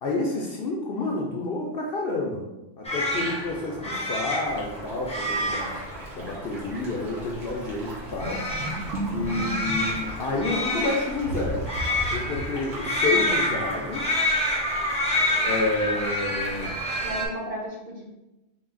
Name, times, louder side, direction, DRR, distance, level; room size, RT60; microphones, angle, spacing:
voice 1, 0.0-2.5 2.8-5.7 6.1-8.4 9.1-11.7 12.1-14.1 15.4-16.7, left 2 dB, 60° left, -1 dB, 0.6 m, -29 dB
sound 1, 2.8-17.3, left 1 dB, 10° left, 0.5 m, -28 dB
sound 2, 4.4-17.1, right 1 dB, 90° right, 1.5 m, -41 dB
sound 3, 8.2-10.5 11.2-13.2 13.5-13.6 14.0-14.1, right 1 dB, 65° right, 1.0 m, -33 dB
voice 2, 17.0-18.1, right 1 dB, 45° right, -3 dB, 0.8 m, -35 dB
3.8 x 2.4 x 3.6 m, 0.97 s
omnidirectional pair, 1.3 m